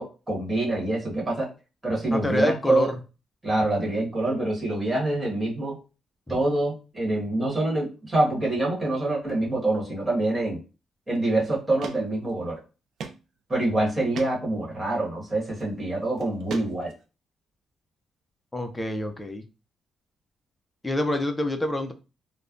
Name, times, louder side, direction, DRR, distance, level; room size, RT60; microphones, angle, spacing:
voice 1, 0.0-1.5 1.8-2.9 3.4-5.8 6.3-10.6 11.1-12.6 13.5-16.9, right 2 dB, 15° right, -4 dB, 1.4 m, -26 dB
voice 2, 2.1-3.0 18.5-19.4 20.8-21.9, left 1 dB, 15° left, 6 dB, 0.4 m, -27 dB
sound 1, 11.1-11.2 11.8-12.0 12.3-12.4 13.0-13.2 13.6-13.7 14.1-14.3 15.5-15.6 16.2-17.0, right 5 dB, 70° right, 0.4 m, -36 dB
3.1 x 2.1 x 2.5 m, 0.31 s
cardioid pair, 105°, 0 cm